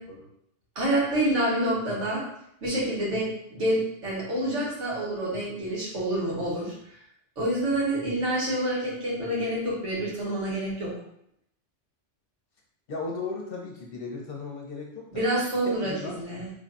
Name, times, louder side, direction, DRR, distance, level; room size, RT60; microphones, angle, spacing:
voice 1, 0.7-2.2 2.6-6.7 7.4-10.9 15.1-16.5, right 1 dB, 80° right, -6 dB, 1.6 m, -27 dB
voice 2, 12.9-15.4 15.7-16.2, left 3 dB, 55° left, -1 dB, 0.8 m, -36 dB
3.2 x 2.3 x 3.9 m, 0.74 s
omnidirectional pair, 1.2 m